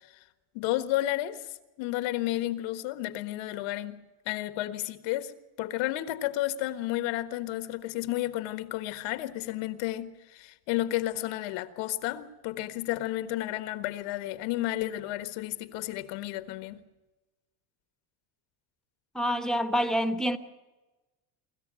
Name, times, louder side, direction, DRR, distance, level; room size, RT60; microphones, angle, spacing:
voice 1, 0.5-1.4 1.8-4.0 4.2-5.3 5.6-16.8, left 15 dB, 85° left, 1.6 m, -32 dB
voice 2, 19.1-20.4, equal, ahead, 1.2 m, -27 dB
25.5 x 14.0 x 7.6 m
cardioid pair, 120°, 45 cm